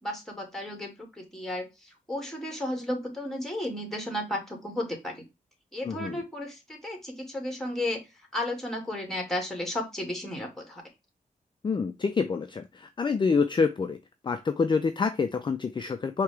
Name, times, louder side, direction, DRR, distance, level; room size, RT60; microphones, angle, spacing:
voice 1, 0.0-5.2 5.7-8.0 8.3-10.8, left 1 dB, 5° left, 2 dB, 2.2 m, -33 dB
voice 2, 5.8-6.2 11.6-14.0 14.2-16.2, left 5 dB, 35° left, 8 dB, 0.4 m, -27 dB
4.7 x 2.9 x 3.3 m, 0.24 s
cardioid pair, 80°, 15 cm